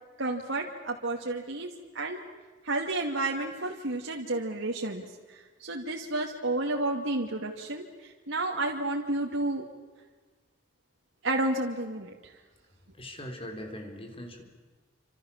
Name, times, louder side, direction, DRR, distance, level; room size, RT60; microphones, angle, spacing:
voice 1, 0.2-2.2 2.6-9.6 11.2-12.3, right 2 dB, 90° right, 0 dB, 2.4 m, -31 dB
voice 2, 13.0-14.4, left 1 dB, 30° left, 4 dB, 4.4 m, -40 dB
29.0 x 27.0 x 7.3 m, 1.3 s
head